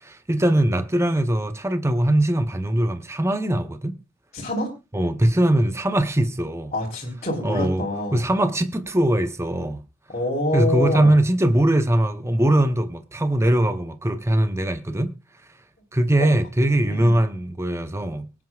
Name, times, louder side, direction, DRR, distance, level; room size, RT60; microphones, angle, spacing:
voice 1, 0.0-4.0 4.9-6.7 7.4-7.9 8.1-9.8 10.5-15.1 15.9-18.3, right 1 dB, 15° right, 0.8 m, -21 dB
voice 2, 4.3-4.7 6.7-8.2 10.1-11.2 16.2-16.3 16.9-17.2, left 1 dB, 35° left, 3.4 m, -26 dB
24.0 x 9.5 x 2.4 m
head